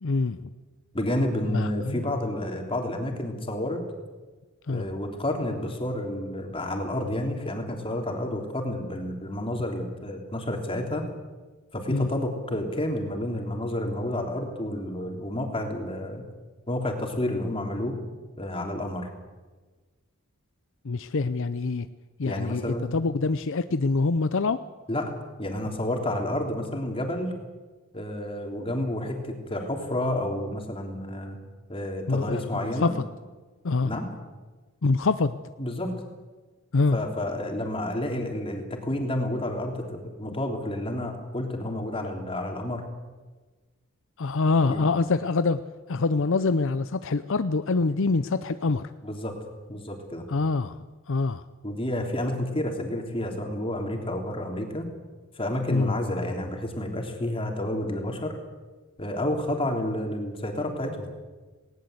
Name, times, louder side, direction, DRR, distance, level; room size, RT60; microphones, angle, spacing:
voice 1, 0.0-0.4 1.4-2.0 4.7-4.8 11.9-12.1 20.8-21.9 22.2-24.6 32.1-32.4 32.8-32.9 33.6-33.9 34.8-35.4 36.7-37.0 44.2-45.6 45.9-48.9 50.3-50.8 51.1-51.4 55.7-55.9, left 3 dB, 65° left, 12 dB, 0.7 m, -25 dB
voice 2, 0.9-3.8 4.7-11.0 11.7-16.2 16.7-17.9 18.4-19.1 22.2-22.9 24.9-25.1 25.4-27.3 27.9-31.4 31.7-32.9 33.8-34.1 35.6-35.9 36.9-42.8 44.6-44.8 49.0-49.3 49.7-50.2 51.6-54.9 55.3-58.4 59.0-61.1, left 1 dB, 25° left, 3 dB, 3.4 m, -30 dB
19.0 x 18.5 x 8.1 m, 1.3 s
head